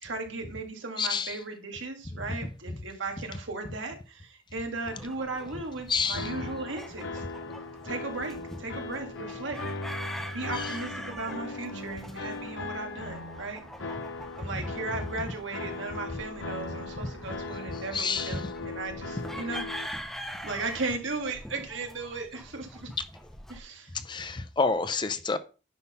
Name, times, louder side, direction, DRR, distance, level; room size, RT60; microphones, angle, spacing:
voice 1, 0.0-7.2 7.8-9.6 10.3-13.6 14.4-19.7 20.4-22.9 23.5-23.9, right 3 dB, 75° right, 2.0 m, -36 dB
voice 2, 1.0-1.4 5.9-6.3 17.9-18.4 23.9-25.4, left 4 dB, 25° left, 0.5 m, -28 dB
sound 1, 4.8-23.6, equal, ahead, 0.8 m, -44 dB
sound 2, 6.1-19.9, left 3 dB, 75° left, 1.0 m, -39 dB
9.7 x 4.0 x 5.5 m
head